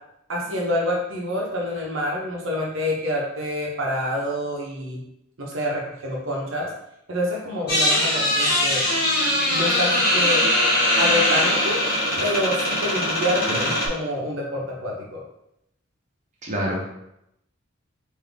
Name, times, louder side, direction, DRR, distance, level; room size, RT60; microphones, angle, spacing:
voice 1, 0.3-5.0 5.4-6.7 7.1-8.8 9.5-10.5 11.0-11.8 12.2-15.2, left 1 dB, 65° right, -2 dB, 0.8 m, -27 dB
sound 1, 7.7-13.9, left 1 dB, 45° left, 1.5 m, -21 dB
voice 2, 16.4-16.8, equal, 35° right, -3 dB, 0.8 m, -27 dB
3.9 x 2.7 x 3.4 m, 0.80 s
head